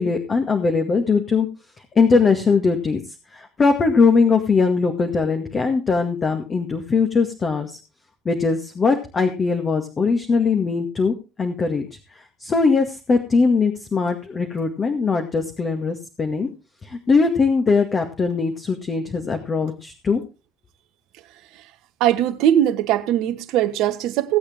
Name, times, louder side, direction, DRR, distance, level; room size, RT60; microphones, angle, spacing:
voice 1, 0.0-1.5 2.0-3.0 3.3-7.7 8.3-11.9 12.1-16.5 16.8-20.2, left 4 dB, 35° left, 2.1 m, -20 dB
voice 2, 22.0-24.4, right 11 dB, 65° right, 1.3 m, -20 dB
18.0 x 8.4 x 3.8 m
hypercardioid pair, 60°, 0 cm